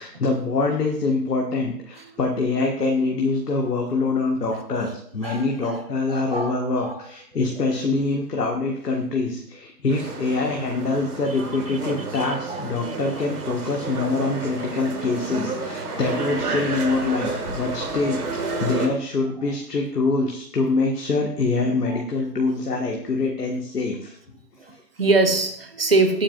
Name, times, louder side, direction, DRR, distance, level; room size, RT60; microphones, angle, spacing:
voice 1, 0.0-24.2, left 3 dB, 65° left, 0 dB, 1.6 m, -25 dB
voice 2, 5.2-5.8 6.1-7.0 11.7-11.8 12.1-12.6 15.8-16.0 21.9-22.0 22.7-23.1 24.7-26.2, right 3 dB, 35° right, 6 dB, 1.0 m, -24 dB
sound 1, 9.9-18.9, right 3 dB, 60° right, 1.9 m, -30 dB
17.5 x 8.7 x 2.4 m, 0.64 s
hypercardioid pair, 175°, 50 cm